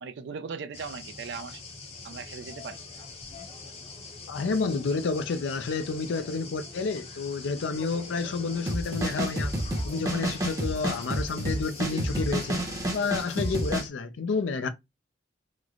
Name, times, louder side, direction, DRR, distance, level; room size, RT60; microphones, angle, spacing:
voice 1, 0.0-1.6 2.0-2.8, right 5 dB, 65° right, 0.4 m, -38 dB
sound 1, 0.7-13.9, left 3 dB, 30° left, 0.7 m, -43 dB
voice 2, 4.3-9.6 9.8-12.6 12.9-14.7, left 4 dB, 80° left, 0.4 m, -30 dB
sound 2, 8.7-13.8, right 1 dB, 20° right, 0.7 m, -29 dB
3.1 x 2.0 x 3.6 m
head